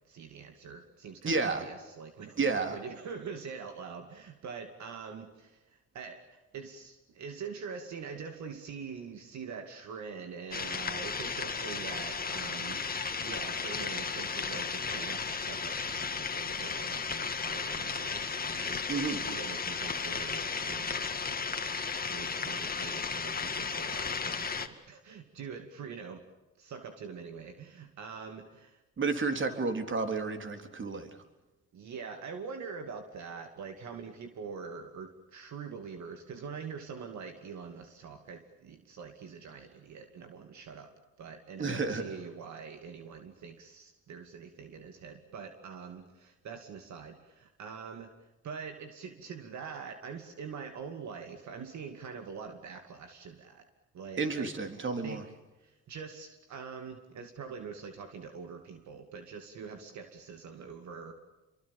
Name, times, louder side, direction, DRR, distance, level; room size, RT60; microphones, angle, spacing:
voice 1, 0.1-12.8 13.2-18.8 19.2-21.4 22.1-26.2 26.6-28.8 31.7-40.9 41.2-53.7 53.9-54.5 55.0-55.3 55.6-61.1, right 6 dB, 70° right, 6 dB, 2.5 m, -44 dB
voice 2, 1.2-1.7 2.4-2.8 18.9-19.2 29.0-31.1 41.6-42.0 54.2-55.2, right 4 dB, 40° right, 6 dB, 3.8 m, -31 dB
sound 1, 10.5-24.7, left 5 dB, 30° left, 2.0 m, -34 dB
28.5 x 23.5 x 7.2 m, 1.0 s
cardioid pair, 90°, 30 cm